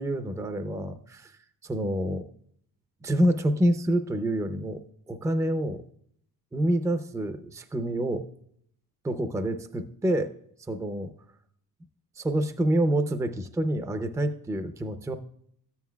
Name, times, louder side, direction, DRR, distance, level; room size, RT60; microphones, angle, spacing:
voice 1, 0.0-1.3 1.6-2.3 3.0-4.8 5.1-5.8 6.5-8.2 9.0-10.3 10.7-11.1 12.2-15.2, right 1 dB, 10° right, 9 dB, 0.5 m, -27 dB
13.5 x 9.4 x 2.2 m, 0.67 s
cardioid pair, 145°, 37 cm